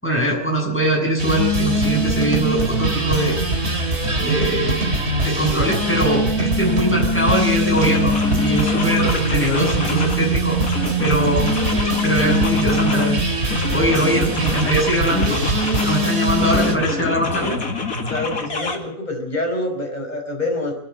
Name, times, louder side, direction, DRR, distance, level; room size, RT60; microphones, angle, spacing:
voice 1, 0.0-3.4 3.6-3.8 4.2-4.9 5.2-10.6 11.0-11.5 12.0-13.2 13.7-15.4 15.8-17.6, right 1 dB, 10° left, -1 dB, 7.7 m, -21 dB
sound 1, 1.2-16.8, right 1 dB, 50° right, 3.0 m, -21 dB
sound 2, 7.2-7.3 7.7-10.3 10.6-13.2 13.5-16.0 16.4-18.8, left 3 dB, 90° left, 2.9 m, -27 dB
voice 2, 18.1-20.7, left 2 dB, 30° left, 3 dB, 5.5 m, -26 dB
24.5 x 11.5 x 9.8 m, 0.67 s
omnidirectional pair, 1.4 m